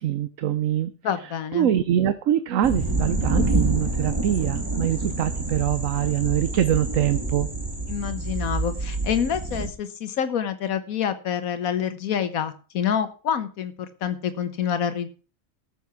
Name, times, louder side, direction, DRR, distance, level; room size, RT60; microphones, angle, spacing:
voice 1, 0.0-0.9 1.5-7.5, right 11 dB, 70° right, 13 dB, 1.1 m, -24 dB
voice 2, 1.0-1.7 7.9-15.1, left 8 dB, 85° left, 11 dB, 1.4 m, -27 dB
sound 1, 2.6-9.7, right 2 dB, 15° right, 2.2 m, -27 dB
14.5 x 7.1 x 5.8 m, 0.37 s
omnidirectional pair, 1.4 m